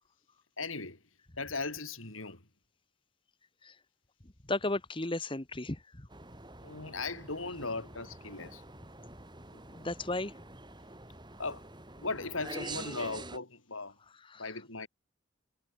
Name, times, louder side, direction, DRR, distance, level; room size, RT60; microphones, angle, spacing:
voice 1, 0.6-1.0 1.4-2.4 6.6-8.6 11.4-11.6 12.0-14.0 14.4-14.9, left 3 dB, 85° left, 5.2 m, -38 dB
voice 2, 4.5-6.1 9.7-10.3 14.3-14.5, left 2 dB, 25° left, 1.4 m, -34 dB
sound 1, 6.1-13.4, right 2 dB, 20° right, 7.6 m, -47 dB
head